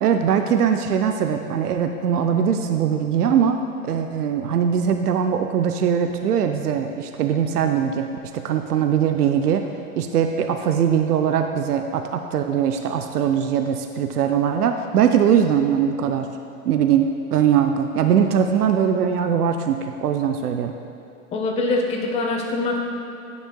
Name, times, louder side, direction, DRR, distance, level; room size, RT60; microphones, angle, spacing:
voice 1, 0.0-3.6 3.8-8.1 8.3-9.6 10.0-16.3 16.7-20.7, right 8 dB, 90° right, 6 dB, 0.5 m, -21 dB
voice 2, 21.3-22.8, left 2 dB, 15° left, 1 dB, 0.6 m, -23 dB
10.0 x 6.1 x 2.2 m, 2.9 s
hypercardioid pair, 105°, 44 cm